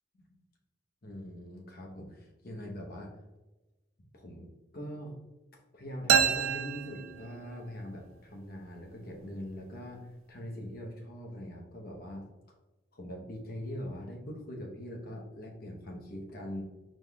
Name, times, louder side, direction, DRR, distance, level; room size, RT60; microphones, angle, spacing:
voice 1, 1.0-3.1 4.1-5.2 5.7-12.3 12.9-16.6, equal, 50° left, 1 dB, 0.9 m, -42 dB
sound 1, 6.1-7.8, right 8 dB, 85° right, 0.4 m, -28 dB
5.0 x 3.7 x 2.3 m, 1.1 s
head